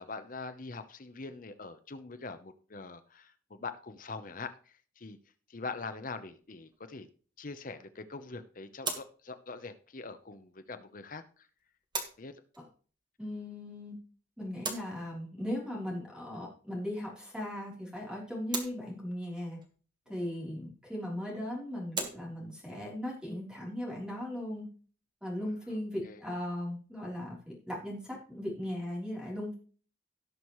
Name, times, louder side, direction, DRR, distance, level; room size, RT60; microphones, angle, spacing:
voice 1, 0.0-5.2 5.5-7.1 7.4-11.2 12.2-12.3 20.1-20.3 26.0-26.2, left 3 dB, 45° left, 10 dB, 0.8 m, -43 dB
sound 1, 6.3-25.7, right 3 dB, 25° right, 1.5 m, -45 dB
voice 2, 13.2-14.0 14.4-19.6 20.1-24.7 25.2-29.5, left 1 dB, 5° right, -3 dB, 3.5 m, -38 dB
17.5 x 6.3 x 3.1 m, 0.41 s
head